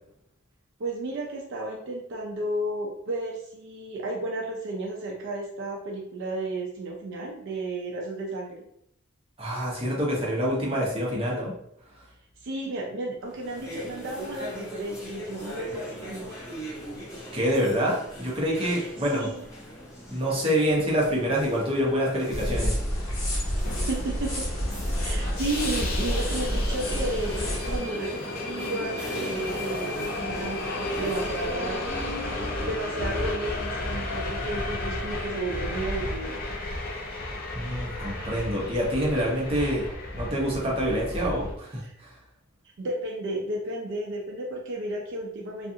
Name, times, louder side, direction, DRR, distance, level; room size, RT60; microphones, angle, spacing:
voice 1, 0.8-8.6 12.4-16.3 18.7-19.4 23.9-24.4 25.0-31.8 32.6-36.4 41.8-42.0 42.8-45.7, right 2 dB, 60° right, -2 dB, 0.4 m, -33 dB
voice 2, 9.4-11.5 17.3-19.3 20.1-22.7 37.5-39.8 40.1-42.1, equal, 30° right, -4 dB, 0.8 m, -26 dB
sound 1, 13.2-31.7, equal, 15° left, 1.0 m, -41 dB
sound 2, 22.3-27.8, equal, 80° left, 0.9 m, -29 dB
Subway metro underground, 23.6-41.5, left 2 dB, 45° left, 0.5 m, -33 dB
2.4 x 2.4 x 2.7 m, 0.73 s
head